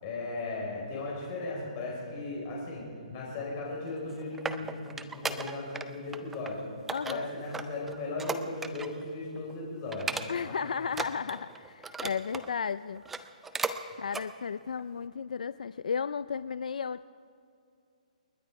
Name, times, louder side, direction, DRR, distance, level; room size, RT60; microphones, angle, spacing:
voice 1, 0.0-6.6 7.0-10.5 13.9-14.0, left 2 dB, 20° left, -3 dB, 4.9 m, -37 dB
sound 1, 3.9-5.9 6.1-6.5 6.9-9.0 9.4-9.5 9.9-10.6 10.9-12.5 13.0-13.8 14.1-14.3 14.8-14.9, right 4 dB, 5° right, 0.3 m, -36 dB
voice 2, 6.9-7.3 10.3-13.0 14.0-17.0, left 6 dB, 70° left, 15 dB, 0.4 m, -34 dB
29.5 x 10.5 x 4.7 m, 2.5 s
hypercardioid pair, 175°, 4 cm